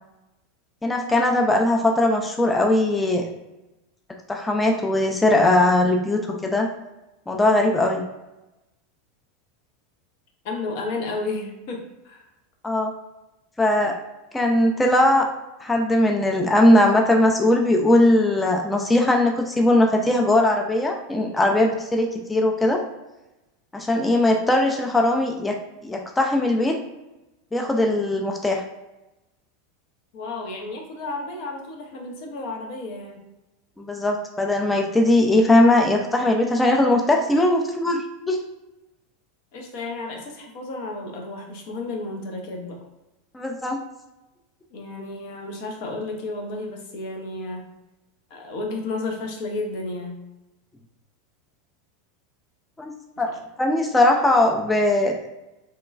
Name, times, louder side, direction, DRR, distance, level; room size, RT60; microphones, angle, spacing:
voice 1, 0.8-3.3 4.3-6.7 7.3-8.0 12.6-12.9 13.6-13.9 14.3-15.3 15.6-22.8 23.7-25.6 25.8-26.8 27.5-28.6 33.8-38.4 43.3-43.8 52.8-53.3 53.6-55.2, left 1 dB, 10° left, 2 dB, 0.3 m, -20 dB
voice 2, 10.4-12.3 30.1-33.3 39.5-42.8 44.7-47.6 48.3-50.2 53.3-53.4, left 2 dB, 55° left, 2 dB, 0.6 m, -32 dB
2.9 x 2.2 x 2.3 m, 0.99 s
figure-of-eight pair, 85°, 0 cm